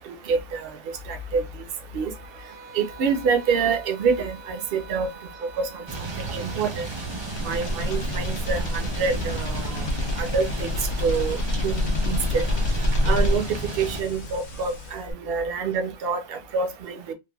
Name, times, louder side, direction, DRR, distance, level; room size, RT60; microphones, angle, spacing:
voice 1, 0.3-0.7 1.1-1.4 1.9-2.1 2.7-5.1 5.6-5.8 6.2-6.8 7.4-9.7 10.2-10.7 11.0-11.4 11.6-12.4 13.0-17.1, right 5 dB, 60° right, 0.8 m, -26 dB
sound 1, 2.1-6.7, right 4 dB, 90° right, 1.0 m, -46 dB
sound 2, 5.9-14.0, right 3 dB, 40° right, 0.4 m, -34 dB
sound 3, 6.8-15.1, left 1 dB, 55° left, 0.5 m, -27 dB
3.2 x 2.1 x 2.2 m
omnidirectional pair, 1.1 m